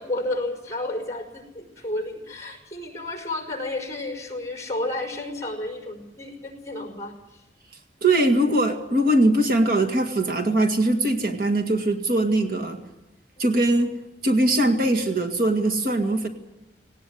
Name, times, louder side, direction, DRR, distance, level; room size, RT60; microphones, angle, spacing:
voice 1, 0.0-7.4, left 2 dB, 15° left, 2 dB, 5.0 m, -31 dB
voice 2, 8.0-12.8 13.4-13.9 14.2-16.3, right 1 dB, 55° right, 4 dB, 1.9 m, -21 dB
18.5 x 18.0 x 9.4 m, 0.97 s
head